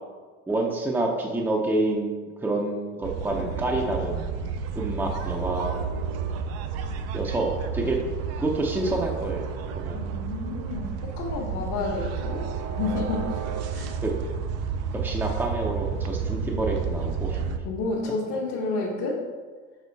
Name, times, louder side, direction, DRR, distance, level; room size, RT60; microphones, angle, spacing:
voice 1, 0.5-4.3 4.7-5.8 7.1-8.0 8.4-10.1 14.0-14.1 15.0-17.4, right 2 dB, 5° right, 0 dB, 0.6 m, -28 dB
sound 1, 3.0-17.6, right 6 dB, 55° right, 0.6 m, -31 dB
voice 2, 9.9-13.4 13.7-13.9 17.6-19.2, left 3 dB, 60° left, -6 dB, 1.4 m, -31 dB
6.4 x 4.3 x 4.1 m, 1.5 s
cardioid pair, 130°, 31 cm